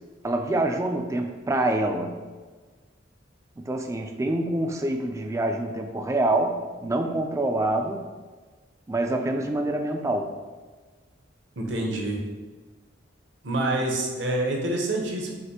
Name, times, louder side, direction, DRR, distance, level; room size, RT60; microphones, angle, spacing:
voice 1, 0.2-2.2 3.6-8.0 8.9-10.3, right 1 dB, 15° right, 4 dB, 0.3 m, -26 dB
voice 2, 11.6-12.2 13.4-15.4, right 1 dB, 60° right, 0 dB, 0.8 m, -27 dB
6.4 x 2.5 x 2.9 m, 1.3 s
head